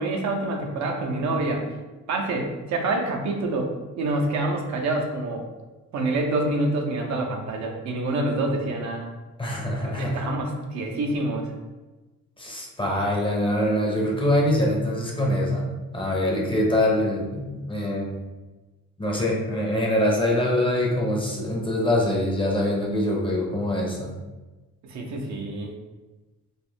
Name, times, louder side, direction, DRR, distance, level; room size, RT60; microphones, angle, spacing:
voice 1, 0.0-1.6 2.1-5.5 5.9-9.1 9.9-11.5 24.8-25.7, right 2 dB, 65° right, 1 dB, 0.5 m, -27 dB
voice 2, 9.4-10.4 12.4-15.7 15.9-18.2 19.0-24.1, left 1 dB, 15° left, -2 dB, 0.6 m, -24 dB
2.3 x 2.0 x 3.2 m, 1.2 s
cardioid pair, 90°, 30 cm